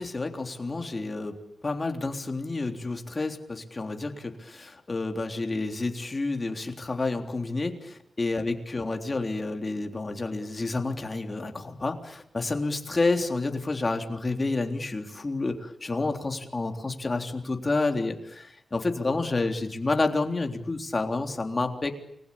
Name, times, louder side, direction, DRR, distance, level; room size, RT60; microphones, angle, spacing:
voice 1, 0.0-1.4 1.6-21.9, left 3 dB, 30° left, 5 dB, 3.5 m, -29 dB
29.0 x 21.0 x 8.7 m, 0.74 s
wide cardioid pair, 110°, 0 cm